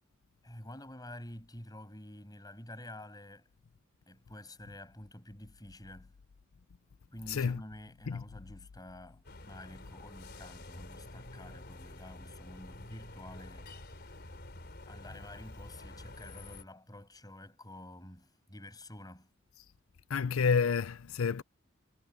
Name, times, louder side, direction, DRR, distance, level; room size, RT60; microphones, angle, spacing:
voice 1, 0.4-3.5 4.1-6.1 7.1-14.2 14.8-19.3, left 1 dB, 20° left, 7.0 m, -49 dB
voice 2, 7.3-7.6 8.1-8.2 20.1-21.4, left 5 dB, 85° left, 0.5 m, -29 dB
sound 1, 9.2-16.6, left 2 dB, 55° left, 3.8 m, -48 dB
head